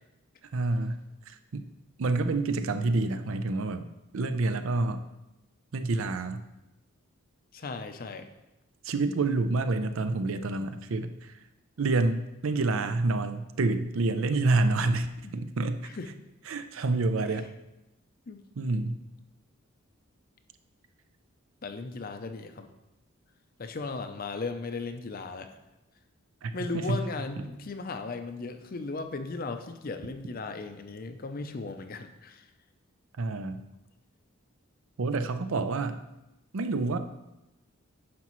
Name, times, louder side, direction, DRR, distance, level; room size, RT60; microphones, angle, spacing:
voice 1, 0.5-1.0 1.3-1.6 2.0-3.9 4.1-5.0 5.7-6.4 8.8-11.1 11.8-15.9 16.5-17.5 18.6-19.0 26.4-27.0 33.2-33.6 35.0-36.0 36.5-37.0, right 3 dB, 70° right, 9 dB, 0.5 m, -28 dB
voice 2, 7.5-8.3 15.2-15.3 15.8-16.1 17.3-17.4 18.3-18.4 21.6-22.7 23.6-25.6 26.5-32.5, left 3 dB, 40° left, 8 dB, 0.5 m, -37 dB
9.5 x 6.0 x 3.1 m, 0.96 s
head